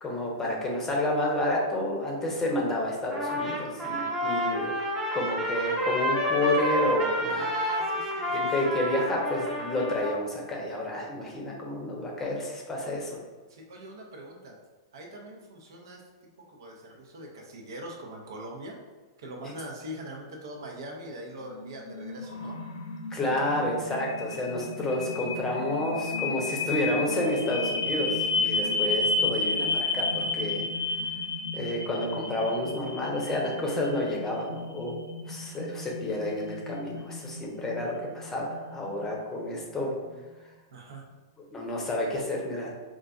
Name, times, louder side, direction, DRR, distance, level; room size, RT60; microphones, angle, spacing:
voice 1, 0.0-4.7 5.1-7.4 8.3-13.2 23.1-30.6 31.5-35.0 35.3-39.9 41.5-42.7, left 1 dB, 15° left, -1 dB, 0.7 m, -30 dB
Trumpet, 3.1-10.2, equal, 20° right, 0.8 m, -29 dB
voice 2, 7.2-8.7 13.5-14.6 14.9-16.0 16.4-18.8 19.2-22.6 39.7-40.2 40.7-41.0, right 1 dB, 70° right, 1 dB, 0.7 m, -42 dB
sound 1, 21.5-39.6, left 3 dB, 85° left, 0.4 m, -32 dB
3.9 x 2.4 x 2.4 m, 1.3 s
hypercardioid pair, 120°, 2 cm